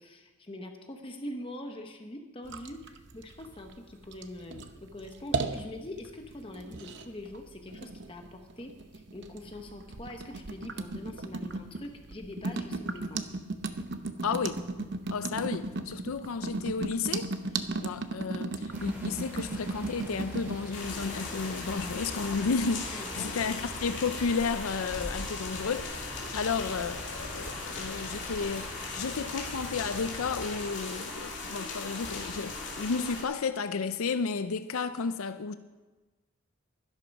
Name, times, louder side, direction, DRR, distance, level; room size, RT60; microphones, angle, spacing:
voice 1, 0.0-13.3 22.9-23.3, left 1 dB, 25° left, 4 dB, 1.0 m, -43 dB
sound 1, 2.5-20.7, right 3 dB, 55° right, 0.7 m, -36 dB
voice 2, 14.2-14.6 15.1-17.3 17.8-35.5, left 5 dB, 85° left, 11 dB, 0.5 m, -32 dB
sound 2, 18.7-30.5, equal, 10° right, 3.5 m, -45 dB
sound 3, 20.7-33.2, left 3 dB, 55° left, 2.7 m, -38 dB
12.0 x 11.5 x 5.3 m, 1.2 s
head